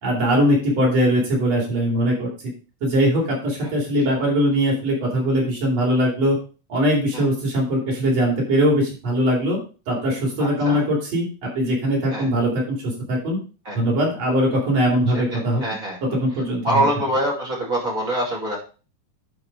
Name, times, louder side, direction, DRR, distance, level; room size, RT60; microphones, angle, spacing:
voice 1, 0.0-2.3 2.8-6.4 6.7-9.6 9.9-11.3 11.5-13.4 13.7-15.6 16.0-16.9, equal, 50° right, -2 dB, 4.8 m, -21 dB
voice 2, 10.4-10.8 12.1-12.3 13.6-13.8 15.1-16.0 16.6-18.6, right 1 dB, 25° right, -3 dB, 2.5 m, -24 dB
10.5 x 4.7 x 4.8 m, 0.36 s
omnidirectional pair, 3.7 m